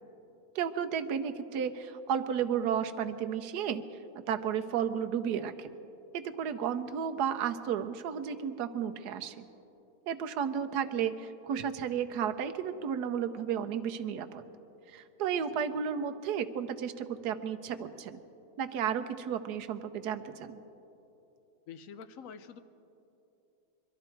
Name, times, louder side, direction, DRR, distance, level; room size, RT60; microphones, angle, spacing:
voice 1, 0.5-3.8 4.3-5.7 6.1-9.4 10.1-14.4 14.9-18.2 18.6-20.6, right 8 dB, 80° right, 8 dB, 1.3 m, -33 dB
voice 2, 21.7-22.6, left 6 dB, 65° left, 11 dB, 1.0 m, -46 dB
23.0 x 13.0 x 4.5 m, 2.9 s
omnidirectional pair, 1.7 m